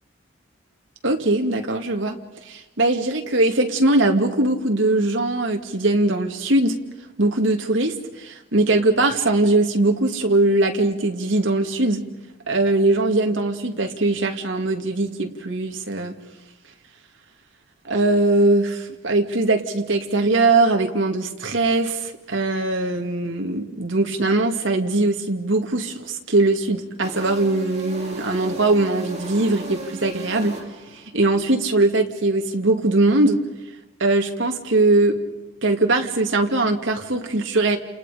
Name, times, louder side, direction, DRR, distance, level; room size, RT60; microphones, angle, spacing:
voice 1, 1.0-2.2 2.5-6.8 7.2-12.0 12.5-16.2 17.8-30.6 30.9-33.4 34.0-35.2 35.6-37.8, right 2 dB, 75° right, 3 dB, 2.3 m, -21 dB
sound 1, 27.0-31.1, right 1 dB, 35° right, 5.1 m, -36 dB
29.5 x 28.5 x 5.1 m, 1.0 s
head